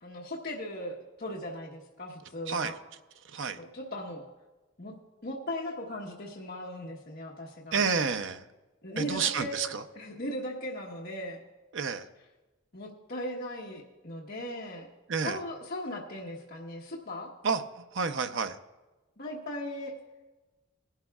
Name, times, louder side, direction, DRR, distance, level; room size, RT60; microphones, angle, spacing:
voice 1, 0.0-2.7 3.6-4.2 4.8-4.9 5.2-7.8 8.8-11.4 12.7-14.9 15.2-17.3 19.2-19.9, left 1 dB, 50° left, -4 dB, 1.2 m, -38 dB
voice 2, 3.2-3.6 7.7-8.4 9.0-9.8 11.7-12.1 15.1-15.4 17.4-18.6, right 5 dB, 75° right, 9 dB, 0.6 m, -30 dB
19.5 x 11.5 x 2.4 m, 1.2 s
head